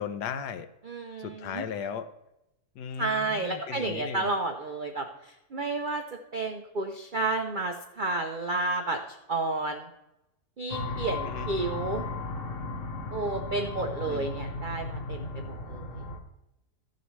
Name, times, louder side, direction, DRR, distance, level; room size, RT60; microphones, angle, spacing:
voice 1, 0.0-0.7 1.2-2.1 2.7-4.3 11.3-11.5 14.1-14.3, left 7 dB, 75° left, 11 dB, 1.3 m, -36 dB
voice 2, 0.9-1.6 3.0-5.1 5.5-6.0 6.3-9.0 9.3-9.9 10.6-12.0 13.1-15.9, right 2 dB, 65° right, 4 dB, 0.4 m, -31 dB
sound 1, 10.7-16.2, left 3 dB, 50° left, 1.2 m, -35 dB
14.5 x 6.8 x 3.1 m, 0.89 s
omnidirectional pair, 1.8 m